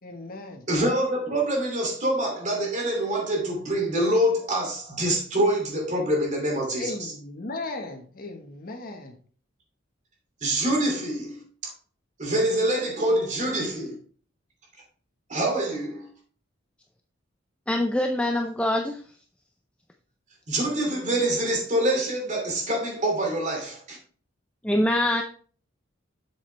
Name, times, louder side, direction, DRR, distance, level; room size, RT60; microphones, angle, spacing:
voice 1, 0.0-0.6 6.7-9.1, left 2 dB, 50° left, 1.4 m, -36 dB
voice 2, 0.7-7.1 10.4-11.7 12.2-14.0 15.3-16.1 20.5-24.0, right 1 dB, 40° right, 2.7 m, -25 dB
voice 3, 17.7-19.0 24.6-25.2, left 1 dB, 5° left, 0.5 m, -24 dB
7.4 x 7.3 x 3.4 m
head